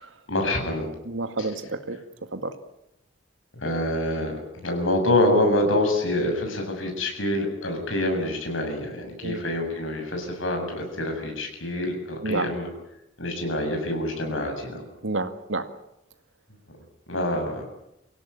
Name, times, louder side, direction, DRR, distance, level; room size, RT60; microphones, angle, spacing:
voice 1, 0.3-0.9 1.4-1.5 3.5-4.3 4.6-12.7 13.2-14.8 16.7-16.8 17.1-17.6, left 1 dB, 90° left, 3 dB, 7.3 m, -26 dB
voice 2, 1.0-2.0 2.3-2.5 9.2-9.4 12.2-12.5 15.0-15.7, right 2 dB, 80° right, 8 dB, 2.1 m, -29 dB
25.0 x 17.0 x 9.8 m, 0.83 s
head